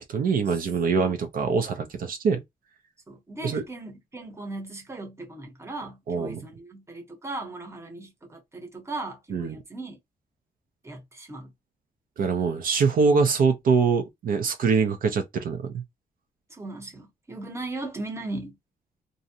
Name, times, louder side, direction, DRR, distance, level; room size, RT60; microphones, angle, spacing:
voice 1, 0.0-2.4 3.4-3.6 6.1-6.5 9.3-9.6 12.2-15.8, right 5 dB, 65° right, 0.5 m, -24 dB
voice 2, 3.1-10.0 10.8-11.5 16.5-18.6, right 2 dB, 15° right, 0.9 m, -38 dB
2.6 x 2.0 x 2.7 m
cardioid pair, 120°, 15 cm